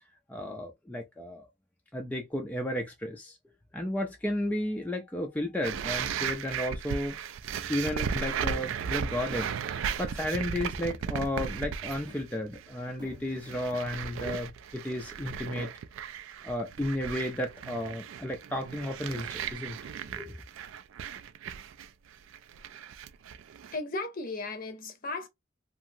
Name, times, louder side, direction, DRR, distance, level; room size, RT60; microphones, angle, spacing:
voice 1, 0.3-1.5 1.9-3.4 3.7-7.2 7.7-15.7 16.4-19.8 20.2-20.4, left 1 dB, 10° left, 0.3 m, -33 dB
sound 1, 5.6-12.3 12.5-12.9 13.3-23.8, right 7 dB, 75° right, 0.3 m, -36 dB
sound 2, 7.5-14.3, left 1 dB, 20° right, 0.7 m, -52 dB
voice 2, 23.7-25.3, left 3 dB, 45° left, 0.6 m, -35 dB
2.8 x 2.5 x 2.6 m
head